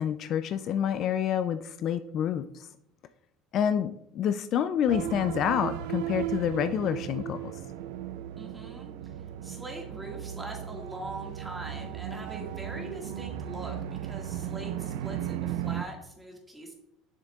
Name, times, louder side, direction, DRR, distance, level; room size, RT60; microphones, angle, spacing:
voice 1, 0.0-2.7 3.5-7.5, left 9 dB, 50° left, 11 dB, 0.3 m, -28 dB
sound 1, 4.9-15.8, right 10 dB, 85° right, 0.4 m, -36 dB
voice 2, 8.4-8.9 9.4-16.7, right 2 dB, 10° right, 0 dB, 1.8 m, -42 dB
7.2 x 6.4 x 2.4 m, 0.76 s
cardioid pair, 125°, 0 cm